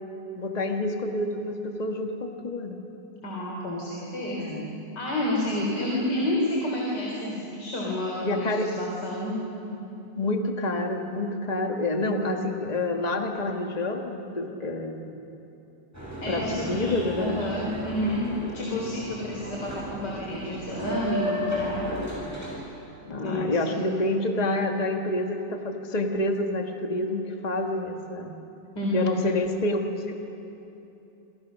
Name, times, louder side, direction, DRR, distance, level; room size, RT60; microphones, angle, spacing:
voice 1, 0.4-2.8 4.4-4.8 8.2-8.7 9.7-9.8 10.2-15.1 16.3-17.4 23.0-28.4 28.9-30.2, left 2 dB, 25° left, 3 dB, 1.6 m, -28 dB
voice 2, 3.2-4.4 5.0-9.4 16.2-18.3 18.5-21.9 23.1-23.9 28.7-29.2, left 1 dB, 65° left, -3 dB, 4.3 m, -29 dB
Boat Water vehicle, 15.9-22.5, equal, 10° right, 6.9 m, -34 dB
27.0 x 26.5 x 6.4 m, 2.9 s
omnidirectional pair, 2.0 m